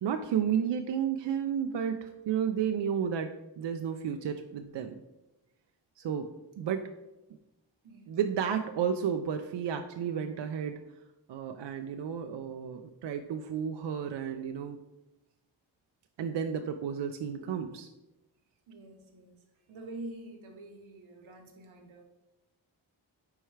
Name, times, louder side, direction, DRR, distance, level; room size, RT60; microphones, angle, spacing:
voice 1, 0.0-5.0 6.0-6.3 6.6-6.9 8.1-10.8 11.3-14.8 16.2-17.9, right 8 dB, 65° right, 6 dB, 0.5 m, -32 dB
voice 2, 7.8-8.2 18.7-19.3 19.7-22.0, right 2 dB, 85° right, 2 dB, 1.1 m, -46 dB
4.7 x 4.4 x 4.7 m, 0.99 s
cardioid pair, 45°, 47 cm